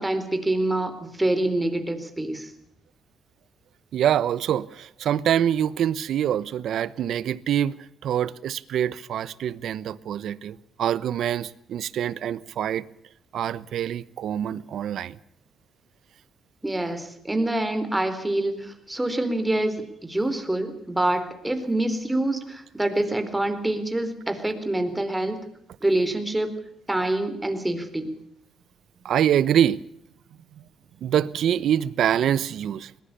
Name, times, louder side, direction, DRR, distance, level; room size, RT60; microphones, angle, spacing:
voice 1, 0.0-2.5 16.6-25.4 25.8-26.5 26.9-28.1, right 1 dB, 10° right, 4.1 m, -26 dB
voice 2, 3.9-12.9 13.3-15.2 29.0-29.8 31.0-32.9, right 10 dB, 70° right, 0.9 m, -25 dB
21.0 x 20.5 x 6.8 m
cardioid pair, 90°, 0 cm